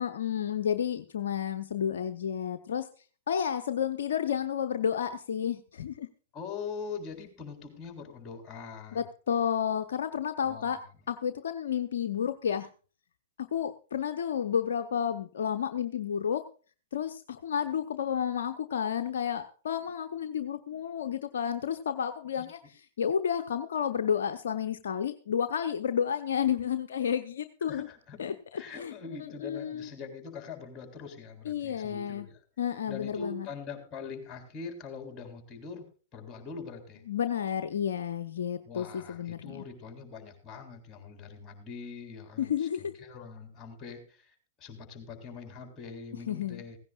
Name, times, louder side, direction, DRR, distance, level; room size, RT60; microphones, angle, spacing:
voice 1, 0.0-2.9 3.3-6.1 8.9-10.8 11.1-12.7 13.4-16.4 16.9-22.6 23.0-27.9 28.2-29.9 31.4-32.3 32.6-33.5 37.1-39.7 42.4-42.9 46.3-46.6, left 8 dB, 65° left, 7 dB, 0.8 m, -31 dB
voice 2, 6.3-9.1 10.4-10.8 22.4-22.5 27.6-28.2 28.5-32.4 32.9-35.9 36.1-37.0 38.7-46.8, left 5 dB, 25° left, 5 dB, 3.8 m, -43 dB
16.5 x 16.0 x 2.4 m, 0.37 s
figure-of-eight pair, 105°, 0 cm